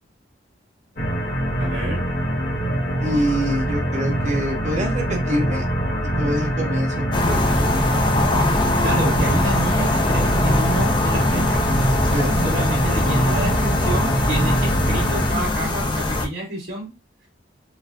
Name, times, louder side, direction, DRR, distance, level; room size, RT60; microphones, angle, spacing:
sound 1, 1.0-15.3, right 1 dB, 55° left, 1.4 m, -23 dB
voice 1, 1.6-2.0 8.8-11.8 12.1-16.9, right 1 dB, 60° right, -9 dB, 1.7 m, -29 dB
voice 2, 3.0-5.6 6.2-7.7 12.1-12.3, equal, 40° right, -2 dB, 1.4 m, -25 dB
sound 2, 7.1-16.3, left 2 dB, 25° left, 0.5 m, -22 dB
4.6 x 2.3 x 2.5 m, 0.25 s
head